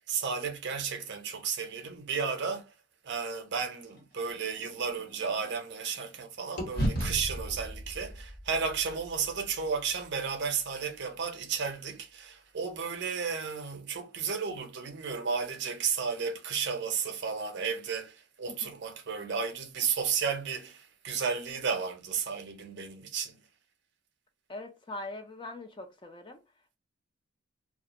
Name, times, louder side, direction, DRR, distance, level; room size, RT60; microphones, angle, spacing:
voice 1, 0.1-2.7 3.0-23.4, right 6 dB, 55° right, 0.6 m, -33 dB
sound 1, 3.9-6.2 6.6-10.8, equal, 50° left, 1.2 m, -37 dB
voice 2, 24.5-26.4, left 2 dB, 20° left, 0.4 m, -42 dB
2.4 x 2.3 x 2.8 m
head